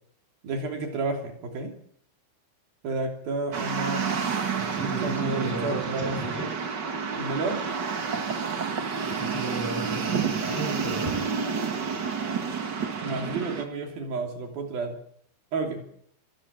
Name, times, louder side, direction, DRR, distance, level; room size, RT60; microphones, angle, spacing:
voice 1, 0.4-1.7 2.8-4.0 4.8-6.2 7.2-7.6 13.0-15.0 15.5-15.9, right 3 dB, 70° right, 4 dB, 4.8 m, -31 dB
sound 1, 3.5-13.6, right 6 dB, 40° right, 1.7 m, -29 dB
voice 2, 4.6-6.5 9.1-11.2, right 2 dB, 5° left, 3 dB, 7.0 m, -34 dB
25.5 x 14.5 x 8.7 m, 0.67 s
omnidirectional pair, 4.4 m